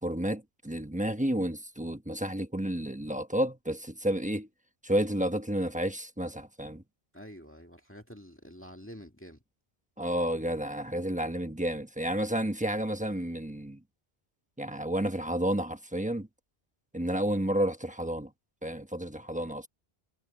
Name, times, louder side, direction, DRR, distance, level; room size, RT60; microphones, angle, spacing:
voice 1, 0.0-4.5 4.8-6.8 10.0-13.8 14.6-16.3 16.9-18.3 18.6-19.7, right 1 dB, 10° right, 1.1 m, -31 dB
voice 2, 7.1-9.4, equal, 10° left, 1.9 m, -48 dB
omnidirectional pair, 1.0 m